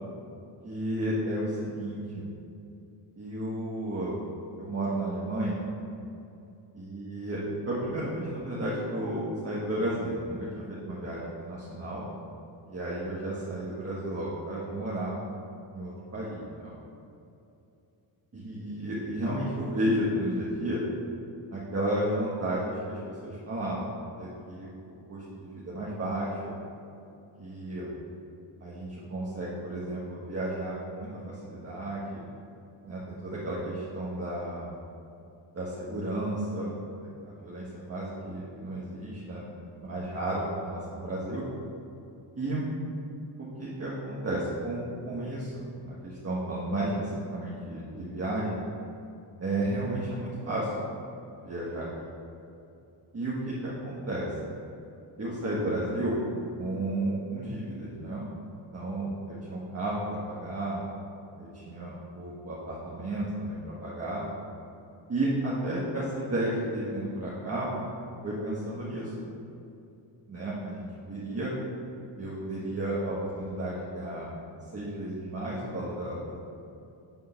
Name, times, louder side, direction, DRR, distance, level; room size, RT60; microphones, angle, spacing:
voice 1, 0.6-2.2 3.2-4.2 4.6-5.6 6.7-7.4 7.6-12.0 12.7-15.2 15.7-16.7 18.3-20.8 21.5-24.7 25.1-26.6 27.4-27.9 28.6-32.2 32.9-34.7 35.5-37.1 37.4-39.4 39.7-41.4 42.3-42.6 43.4-48.6 49.4-50.7 51.4-51.9 53.1-54.3 55.2-56.2 56.6-60.8 61.4-64.2 65.1-67.7 68.2-69.1 70.3-71.5 72.2-74.3 74.7-76.3, right 1 dB, 30° right, -7 dB, 1.4 m, -33 dB
9.5 x 3.7 x 5.7 m, 2.8 s
cardioid pair, 95°, 47 cm